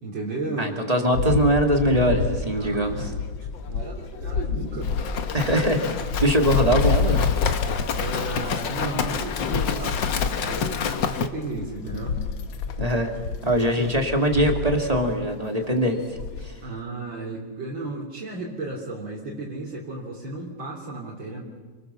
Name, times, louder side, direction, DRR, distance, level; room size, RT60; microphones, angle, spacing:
voice 1, 0.0-0.8 2.4-3.1 3.4-5.1 5.3-5.8 7.9-10.0 10.4-12.2 13.6-14.1 16.6-21.4, right 2 dB, 75° right, -5 dB, 4.0 m, -34 dB
voice 2, 0.6-3.1 5.3-5.8 6.2-7.3 12.8-13.1 13.4-16.5, equal, 20° right, 3 dB, 2.9 m, -22 dB
sound 1, 1.1-15.3 15.6-15.7 16.0-16.6, left 5 dB, 85° left, 2.0 m, -29 dB
Livestock farm animals working animals, 4.8-11.3, left 6 dB, 70° left, 1.9 m, -28 dB
29.0 x 23.5 x 7.1 m, 1.4 s
omnidirectional pair, 2.1 m